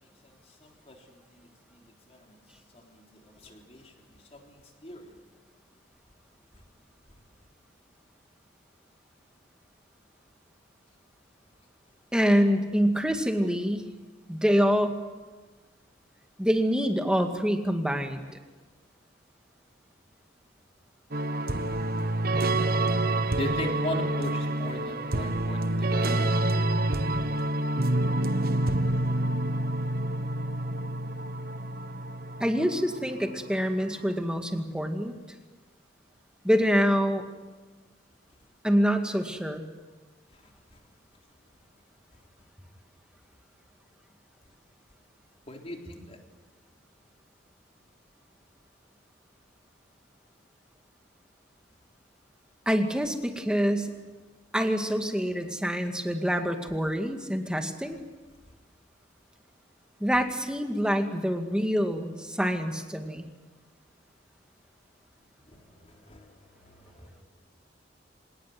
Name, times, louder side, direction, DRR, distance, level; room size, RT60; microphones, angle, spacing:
voice 1, 0.0-2.4 2.7-5.3 6.5-6.6 23.4-26.5 40.3-40.4 40.7-40.8 45.5-46.2 65.5-67.2, left 1 dB, 35° left, 2 dB, 3.8 m, -40 dB
voice 2, 12.1-13.8 14.3-15.0 16.4-18.2 32.4-35.1 36.4-37.2 38.6-39.7 52.7-53.9 54.5-58.0 60.0-63.3, equal, 5° right, 5 dB, 2.1 m, -26 dB
sound 1, 21.1-33.7, right 1 dB, 55° right, 1.2 m, -28 dB
26.5 x 18.5 x 9.5 m, 1.3 s
head